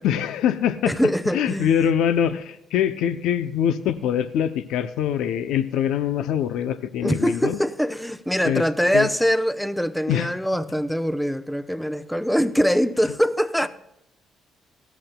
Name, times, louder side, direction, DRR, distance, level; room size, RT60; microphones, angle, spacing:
voice 1, 0.0-1.0 1.3-7.6 8.4-8.7 8.9-9.1 10.1-10.3, left 9 dB, 90° left, 0.5 m, -23 dB
voice 2, 0.8-1.8 7.0-13.7, equal, ahead, 0.6 m, -23 dB
17.5 x 13.5 x 2.2 m
cardioid pair, 90°, 0 cm